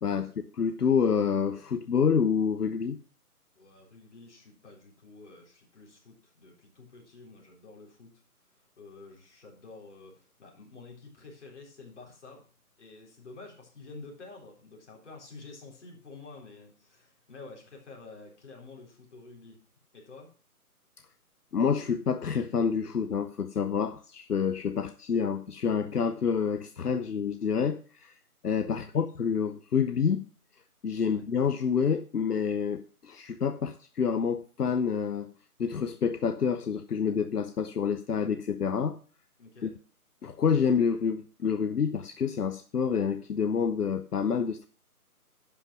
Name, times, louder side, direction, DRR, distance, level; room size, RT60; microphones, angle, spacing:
voice 1, 0.0-3.0 21.5-28.1 28.4-30.2 30.8-35.3 35.6-39.0 39.6-39.7 40.2-44.7, left 6 dB, 80° left, 11 dB, 0.9 m, -28 dB
voice 2, 3.5-8.1 8.8-12.5 12.8-19.6 19.9-20.3 28.7-29.1 31.1-31.2 39.4-39.7, left 3 dB, 50° left, -1 dB, 4.1 m, -49 dB
11.5 x 5.9 x 6.2 m, 0.40 s
figure-of-eight pair, 155°, 46 cm